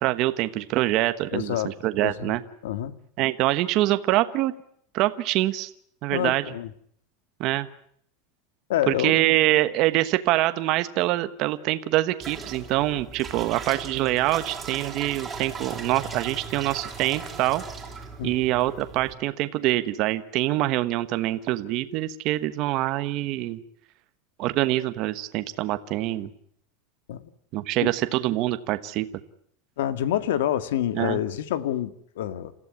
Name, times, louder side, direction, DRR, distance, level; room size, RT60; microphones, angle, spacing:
voice 1, 0.0-2.4 3.2-4.5 4.9-5.7 6.0-6.4 7.4-7.7 8.9-17.6 18.2-23.6 24.4-26.3 27.5-29.1 30.9-31.2, right 16 dB, 40° right, 11 dB, 1.2 m, -25 dB
voice 2, 1.3-1.7 2.0-2.4 2.6-2.9 6.1-6.7 8.7-9.2 18.2-18.3 27.1-27.2 27.8-27.9 29.8-32.5, left 11 dB, 85° left, 12 dB, 1.9 m, -27 dB
sound 1, 12.2-19.1, right 5 dB, 10° right, 3.9 m, -38 dB
28.5 x 15.0 x 9.7 m, 0.66 s
supercardioid pair, 170°, 0 cm